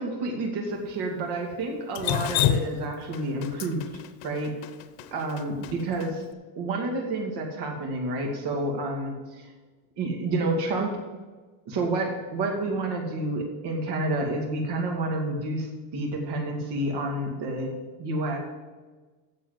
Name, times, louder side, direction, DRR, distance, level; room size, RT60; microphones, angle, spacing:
voice 1, 0.0-3.8 4.2-4.5 5.1-6.2 6.6-9.5 10.0-10.9 11.7-17.7 18.0-18.4, right 2 dB, 50° right, 1 dB, 2.5 m, -29 dB
Drip, 1.9-6.1, left 12 dB, 75° left, 0.8 m, -28 dB
8.0 x 7.4 x 7.6 m, 1.3 s
supercardioid pair, 120°, 50 cm